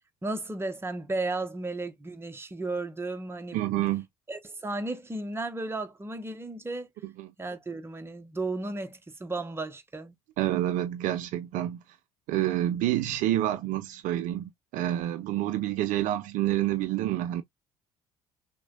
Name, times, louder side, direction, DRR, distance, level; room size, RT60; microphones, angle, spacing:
voice 1, 0.2-3.6 4.3-6.9 7.4-10.1, right 2 dB, 15° right, 0.9 m, -34 dB
voice 2, 3.5-4.1 7.2-7.3 10.4-11.8 12.3-17.4, right 13 dB, 55° right, 0.5 m, -28 dB
6.0 x 2.2 x 2.4 m
figure-of-eight pair, 50°, 16 cm